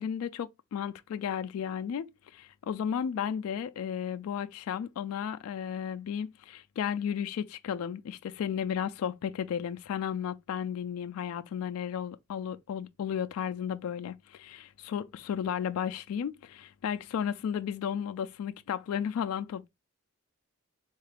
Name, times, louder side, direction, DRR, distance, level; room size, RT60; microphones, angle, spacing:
voice 1, 0.0-19.7, left 8 dB, 85° left, 0.3 m, -34 dB
3.7 x 2.4 x 3.3 m
head